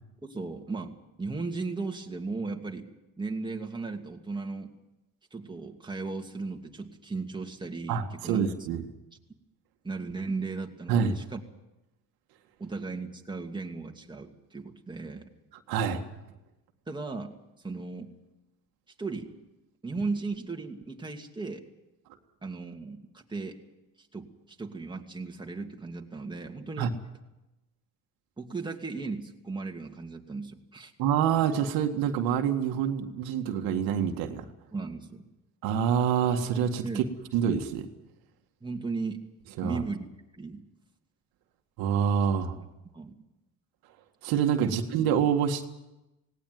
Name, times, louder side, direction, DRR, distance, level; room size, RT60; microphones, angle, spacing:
voice 1, 0.2-0.9 1.2-2.9 3.2-4.7 5.3-8.4 8.7-8.8 9.8-11.4 12.6-15.3 16.9-17.3 17.6-18.1 19.0-19.3 19.8-21.6 22.4-23.6 24.0-26.9 28.4-30.9 34.7-35.2 36.8-37.1 38.6-39.2 39.6-40.1 40.3-40.6 42.5-42.6 42.9-43.2 44.6-44.8, right 3 dB, 15° right, 2 dB, 2.5 m, -36 dB
voice 2, 7.9-8.8 10.9-11.2 15.7-16.0 26.8-26.9 31.0-34.5 35.6-37.0 37.3-37.9 39.6-39.8 41.8-42.6 44.2-45.6, right 8 dB, 85° right, 5 dB, 2.0 m, -26 dB
18.5 x 18.5 x 9.4 m, 0.96 s
cardioid pair, 100°, 35 cm